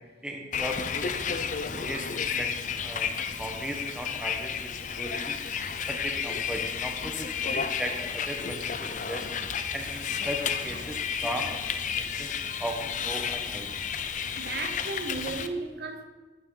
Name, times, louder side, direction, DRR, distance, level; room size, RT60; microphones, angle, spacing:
voice 1, 0.2-2.5 2.8-3.1 3.4-5.4 5.9-9.3 9.7-11.5 11.9-13.7, equal, 5° right, 1.1 m, -37 dB
Bus, 0.5-15.5, left 7 dB, 45° left, 0.6 m, -32 dB
voice 2, 14.4-16.0, right 3 dB, 60° right, 0.8 m, -35 dB
12.0 x 9.3 x 3.9 m
head